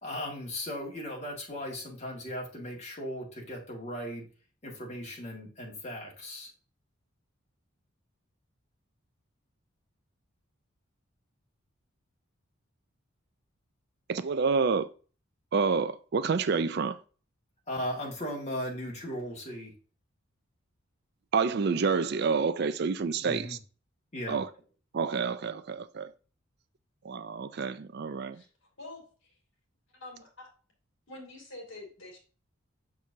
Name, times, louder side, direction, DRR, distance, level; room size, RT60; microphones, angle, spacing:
voice 1, 0.0-4.3 4.6-6.5 17.7-19.7 23.2-23.6 24.1-24.4, equal, 30° left, 1.8 m, -37 dB
voice 2, 14.1-14.9 15.5-17.0 21.3-23.6 24.3-24.5 24.9-26.1 27.0-28.4, right 5 dB, 50° right, 0.4 m, -28 dB
voice 3, 28.3-29.4 29.9-30.5 31.1-32.2, left 2 dB, 60° left, 2.5 m, -47 dB
6.1 x 5.9 x 2.7 m
head